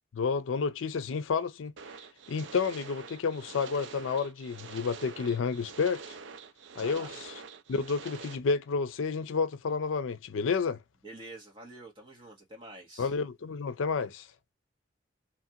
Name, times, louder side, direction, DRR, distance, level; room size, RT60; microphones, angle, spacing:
voice 1, 0.1-1.7 2.3-6.2 6.8-7.1 7.7-10.8 13.0-14.3, left 5 dB, 85° left, 0.4 m, -30 dB
sound 1, 1.8-8.4, right 5 dB, 75° right, 0.5 m, -46 dB
voice 2, 6.8-7.2 11.0-13.1, right 1 dB, 25° right, 1.1 m, -47 dB
2.9 x 2.4 x 2.7 m
head